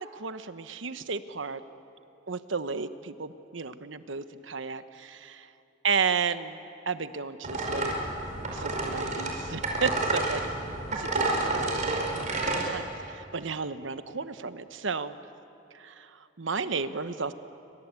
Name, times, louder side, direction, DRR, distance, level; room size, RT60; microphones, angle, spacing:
voice 1, 0.0-1.6 2.3-5.5 5.8-7.9 8.5-10.4 10.9-15.2 15.7-17.3, right 5 dB, 80° right, 11 dB, 1.1 m, -33 dB
sound 1, 7.4-12.7, right 2 dB, 40° right, 4.9 m, -30 dB
29.0 x 24.0 x 8.3 m, 2.8 s
head